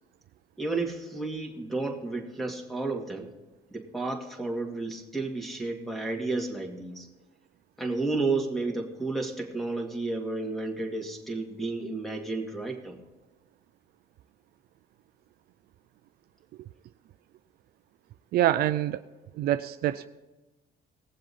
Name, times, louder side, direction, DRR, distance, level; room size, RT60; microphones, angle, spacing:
voice 1, 0.6-3.3 3.7-7.1 7.8-13.0, right 3 dB, ahead, 3 dB, 2.2 m, -32 dB
voice 2, 18.3-19.0 19.3-20.1, right 13 dB, 65° right, 12 dB, 0.4 m, -25 dB
18.5 x 7.6 x 4.2 m, 1.1 s
cardioid pair, 110°, 17 cm